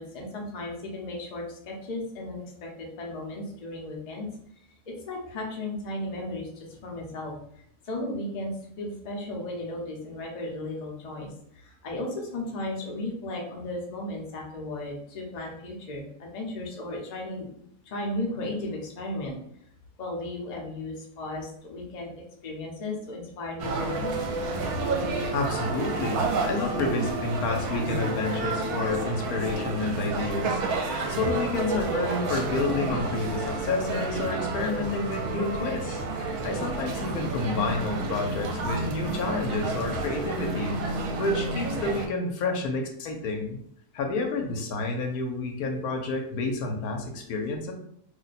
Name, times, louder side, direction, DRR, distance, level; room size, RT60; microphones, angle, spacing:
voice 1, 0.0-4.3 4.9-17.5 17.9-19.4 20.0-22.1 22.4-24.1, left 1 dB, 45° left, -1 dB, 0.5 m, -35 dB
sound 1, 23.6-42.1, right 3 dB, 75° right, 1.0 m, -30 dB
voice 2, 25.3-30.6 31.1-40.8 41.2-43.6 43.9-47.7, left 3 dB, 80° left, 3 dB, 1.1 m, -29 dB
2.7 x 2.2 x 4.0 m, 0.70 s
omnidirectional pair, 1.6 m